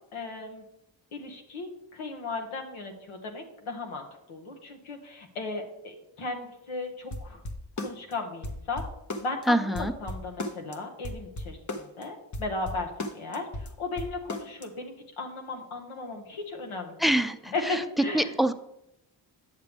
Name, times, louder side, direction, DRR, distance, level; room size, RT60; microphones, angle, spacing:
voice 1, 0.1-0.6 1.1-7.4 7.8-8.8 9.2-17.2 17.5-18.3, left 3 dB, 85° left, 3 dB, 1.3 m, -36 dB
sound 1, 7.1-8.1 8.4-9.4 9.7-10.8 11.0-12.0 12.3-14.6, left 2 dB, 35° left, 1.0 m, -35 dB
voice 2, 9.5-9.9 17.0-17.8 18.1-18.5, right 1 dB, ahead, 12 dB, 0.4 m, -25 dB
8.9 x 6.6 x 3.5 m, 0.82 s
cardioid pair, 55°, 49 cm